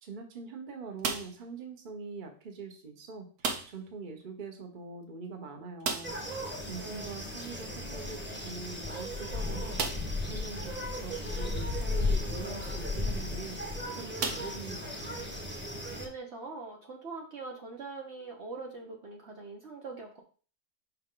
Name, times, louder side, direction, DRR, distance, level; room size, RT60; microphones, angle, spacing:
voice 1, 0.0-6.2 6.6-9.8 10.2-13.6 13.9-15.2, right 4 dB, 35° right, 4 dB, 1.1 m, -43 dB
sound 1, 1.0-1.5 3.4-3.9 4.2-4.3 4.6-4.7 5.8-6.4 8.1-8.2 8.8-8.9 9.7-10.2 11.0-11.1 13.1-13.3 14.2-15.1, right 5 dB, 80° right, 1.5 m, -35 dB
sound 2, 6.0-16.1, left 2 dB, 10° right, 1.1 m, -35 dB
voice 2, 6.7-7.1 15.9-20.2, right 3 dB, 50° right, 1 dB, 1.2 m, -43 dB
5.6 x 5.3 x 3.8 m, 0.39 s
omnidirectional pair, 1.6 m